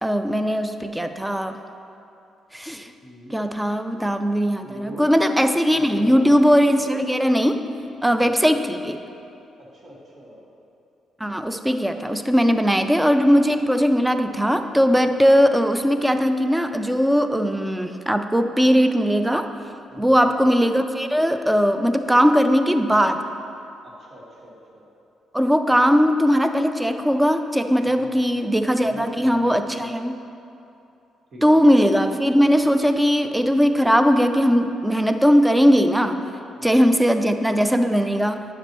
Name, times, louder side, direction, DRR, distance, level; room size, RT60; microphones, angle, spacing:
voice 1, 0.0-1.6 2.5-2.9 3.3-7.7 8.0-9.0 11.2-19.5 20.0-23.2 25.3-30.2 31.4-36.2 36.6-38.5, equal, 5° right, 8 dB, 0.4 m, -19 dB
voice 2, 3.0-3.4 4.6-5.1 5.7-6.4 8.2-8.3 9.6-10.5 19.9-20.3 23.8-24.9 27.8-28.3 28.8-29.9 31.3-31.6 36.3-36.9, equal, 50° right, -4 dB, 1.6 m, -41 dB
9.9 x 6.0 x 3.0 m, 2.8 s
cardioid pair, 90°, 0 cm